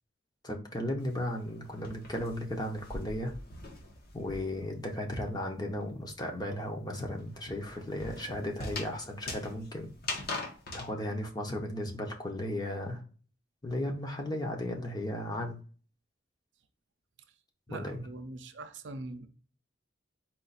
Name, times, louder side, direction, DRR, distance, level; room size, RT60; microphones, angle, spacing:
voice 1, 0.4-3.4 4.1-9.9 10.2-10.4 10.7-13.0 13.6-15.6 17.7-18.0, left 1 dB, 20° left, 0.8 m, -35 dB
sound 1, 1.0-4.7 5.0-10.9, left 2 dB, 50° left, 1.2 m, -42 dB
voice 2, 17.7-19.3, right 2 dB, 65° right, 0.5 m, -43 dB
4.4 x 2.5 x 3.9 m
head